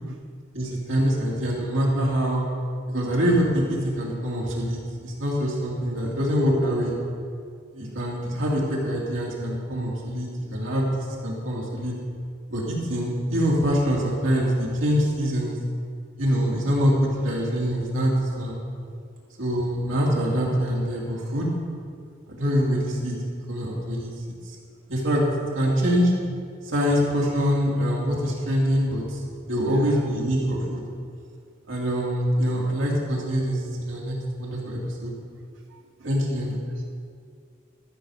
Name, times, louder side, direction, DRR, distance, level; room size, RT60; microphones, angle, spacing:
voice 1, 0.5-2.4 2.9-6.9 7.7-11.9 12.5-15.6 16.2-16.9 17.2-18.6 19.4-21.5 22.3-23.1 23.5-24.1 24.5-24.6 24.9-25.2 25.6-26.1 26.6-29.2 29.5-30.8 31.7-35.1 36.0-36.5, equal, 90° right, -4 dB, 2.4 m, -24 dB
voice 2, 29.6-30.0 35.7-36.1 36.5-36.8, right 3 dB, 70° right, 4 dB, 0.5 m, -41 dB
13.0 x 4.9 x 6.8 m, 2.2 s
head